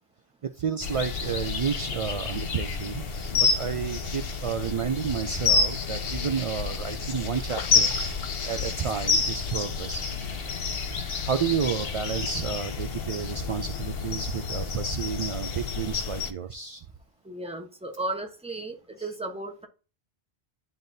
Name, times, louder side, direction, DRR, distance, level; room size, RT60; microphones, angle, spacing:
voice 1, 0.4-3.0 3.3-7.9 8.2-10.1 11.3-16.8 19.0-19.1, right 7 dB, 55° right, 8 dB, 0.3 m, -31 dB
sound 1, 0.8-16.3, left 4 dB, 65° left, 1.0 m, -29 dB
voice 2, 17.2-19.7, right 2 dB, 5° right, 3 dB, 0.9 m, -35 dB
10.5 x 3.9 x 2.6 m, 0.34 s
omnidirectional pair, 1.1 m